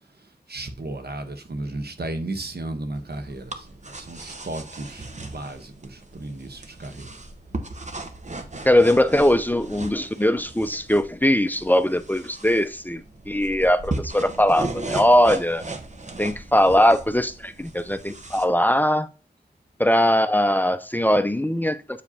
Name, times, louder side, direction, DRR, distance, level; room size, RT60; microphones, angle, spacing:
voice 1, 0.2-7.2, right 2 dB, 80° right, 1.1 m, -34 dB
sound 1, 3.0-18.5, right 2 dB, 45° right, 0.9 m, -37 dB
voice 2, 8.6-15.6 16.2-19.1 19.8-21.8, left 1 dB, 10° left, 0.5 m, -20 dB
8.3 x 5.0 x 2.8 m
wide cardioid pair, 50°, 16 cm